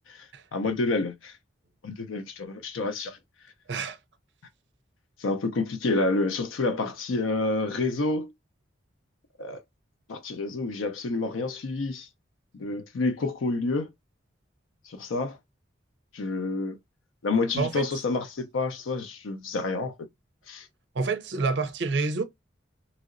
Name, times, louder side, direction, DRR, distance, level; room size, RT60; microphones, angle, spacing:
voice 1, 0.1-1.3 1.8-3.2 5.2-8.3 9.4-9.6 10.1-12.1 12.5-13.9 14.9-15.4 16.1-16.8 17.2-19.9 20.5-20.7, left 3 dB, 85° left, 0.5 m, -29 dB
voice 2, 17.6-17.9 20.9-22.2, right 4 dB, 60° right, 0.5 m, -27 dB
3.0 x 2.8 x 2.5 m
head